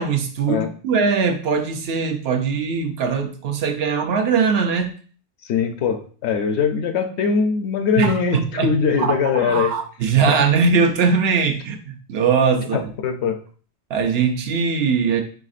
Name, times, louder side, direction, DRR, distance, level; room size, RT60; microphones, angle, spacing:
voice 1, 0.0-4.9 8.0-12.8 13.9-15.2, right 5 dB, 65° right, 5 dB, 0.8 m, -21 dB
voice 2, 5.5-9.7 10.3-10.4 12.7-13.4, left 5 dB, 75° left, 7 dB, 0.9 m, -21 dB
4.8 x 3.4 x 2.5 m, 0.42 s
omnidirectional pair, 1.2 m